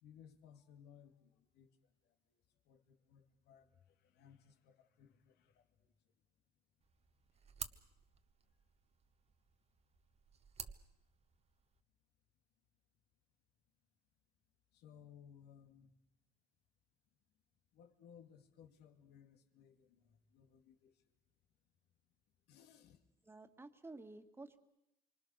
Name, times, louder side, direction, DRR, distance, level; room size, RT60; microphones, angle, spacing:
voice 1, 0.0-5.9 14.7-15.9 17.7-21.0 22.5-23.0, left 8 dB, 75° left, 6 dB, 2.4 m, -62 dB
sound 1, 6.8-11.8, right 6 dB, 40° right, 1.2 m, -53 dB
voice 2, 23.3-24.6, right 2 dB, 15° right, 8 dB, 1.9 m, -53 dB
26.0 x 25.0 x 6.5 m, 0.87 s
cardioid pair, 110°, 17 cm